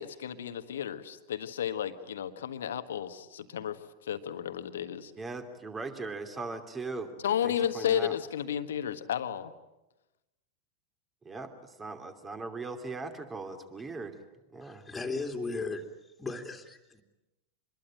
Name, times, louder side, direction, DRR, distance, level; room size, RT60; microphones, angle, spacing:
voice 1, 0.0-3.8 4.1-5.1 7.2-9.5, left 9 dB, 60° left, 10 dB, 1.5 m, -32 dB
voice 2, 5.2-8.1 11.2-14.2 14.5-14.8, right 3 dB, 15° right, 8 dB, 2.9 m, -39 dB
voice 3, 14.6-15.8 16.2-17.0, left 3 dB, 10° left, 2 dB, 3.1 m, -36 dB
26.5 x 21.5 x 9.0 m, 0.99 s
figure-of-eight pair, 90°, 0 cm